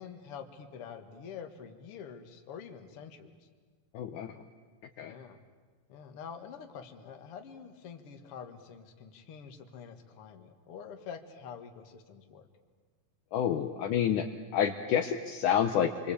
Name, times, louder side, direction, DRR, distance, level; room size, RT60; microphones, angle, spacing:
voice 1, 0.0-3.5 5.0-5.4 5.9-12.5, left 7 dB, 45° left, 6 dB, 2.2 m, -46 dB
voice 2, 3.9-4.4 5.0-5.1 13.3-14.3 14.5-16.1, left 9 dB, 70° left, 6 dB, 2.2 m, -29 dB
28.0 x 23.5 x 8.5 m, 1.5 s
omnidirectional pair, 4.2 m